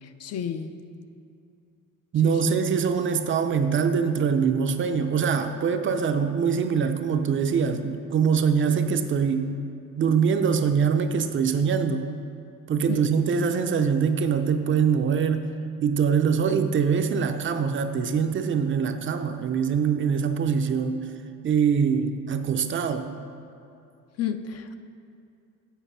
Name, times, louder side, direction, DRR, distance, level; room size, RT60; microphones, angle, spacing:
voice 1, 0.0-0.7 2.2-2.6 12.9-13.0 24.2-24.7, left 8 dB, 50° left, 9 dB, 0.5 m, -32 dB
voice 2, 2.1-9.5 10.0-12.1 12.7-15.5 15.8-21.1 21.4-23.1, right 6 dB, 40° right, 7 dB, 0.5 m, -23 dB
7.3 x 6.6 x 5.5 m, 2.6 s
cardioid pair, 140°, 32 cm